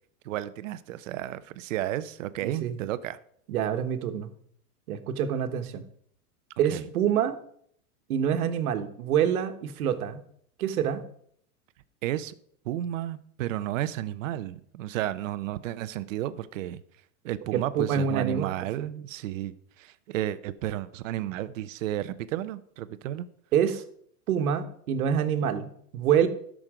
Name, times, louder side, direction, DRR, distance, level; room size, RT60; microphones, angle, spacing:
voice 1, 0.2-3.2 6.7-6.8 12.0-12.3 12.6-16.8 17.2-23.3, right 13 dB, 60° right, 14 dB, 0.7 m, -32 dB
voice 2, 2.4-2.8 3.5-4.3 4.9-5.8 6.6-7.4 8.1-10.2 10.6-11.0 17.5-18.5 18.8-18.9 23.5-23.8 24.3-26.3, right 8 dB, 75° right, 9 dB, 1.4 m, -26 dB
12.5 x 6.3 x 4.9 m, 0.65 s
supercardioid pair, 165°, 44 cm